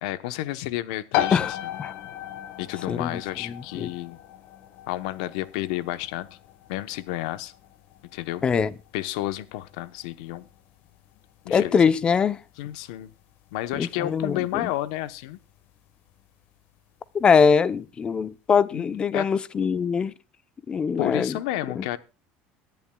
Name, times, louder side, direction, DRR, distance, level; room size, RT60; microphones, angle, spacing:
voice 1, 0.0-1.7 2.6-4.2 4.9-6.3 6.7-7.5 8.1-8.4 8.9-10.5 11.4-11.8 12.6-13.1 13.5-15.4 18.7-18.8 19.1-19.3 21.0-22.0, left 15 dB, 90° left, 0.9 m, -31 dB
sound 1, 1.1-15.6, left 12 dB, 65° left, 1.4 m, -36 dB
voice 2, 2.9-3.2 3.5-3.9 8.4-8.7 11.5-12.4 13.8-14.6 17.1-20.1 20.7-21.4 21.8-21.9, left 6 dB, 25° left, 0.6 m, -22 dB
23.5 x 10.5 x 2.3 m
cardioid pair, 140°, 4 cm